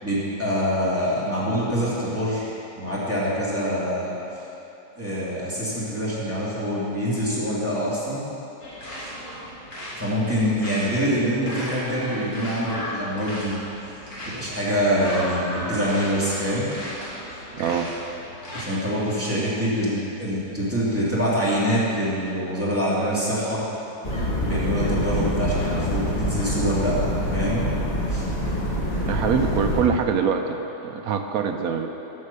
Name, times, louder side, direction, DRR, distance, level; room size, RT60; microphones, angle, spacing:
voice 1, 0.0-2.5 2.8-4.1 5.0-8.2 9.0-9.1 10.0-13.6 14.2-16.7 18.5-23.6 24.4-27.0 27.3-27.7 28.1-28.3, equal, 10° right, -9 dB, 2.4 m, -25 dB
sound 1, 8.6-18.6, equal, 55° left, 2.6 m, -36 dB
voice 2, 17.6-17.9 29.0-30.6 30.8-31.9, right 6 dB, 65° right, 5 dB, 1.0 m, -23 dB
sound 2, 24.0-29.8, equal, 25° left, 1.6 m, -25 dB
10.5 x 6.5 x 6.8 m, 3.0 s
omnidirectional pair, 1.9 m